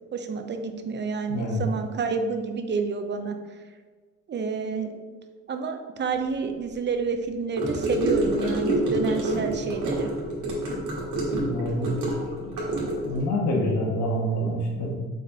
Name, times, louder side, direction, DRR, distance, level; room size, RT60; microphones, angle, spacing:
voice 1, 0.1-3.4 4.3-4.9 5.5-10.1, right 5 dB, 35° right, 6 dB, 0.5 m, -29 dB
voice 2, 1.3-1.6 11.4-12.0 13.0-14.9, equal, 70° left, -3 dB, 1.1 m, -26 dB
Gurgling / Car passing by / Sink (filling or washing), 7.6-13.2, right 1 dB, 80° right, 1.4 m, -27 dB
5.0 x 3.8 x 2.7 m, 1.5 s
cardioid pair, 90°, 30 cm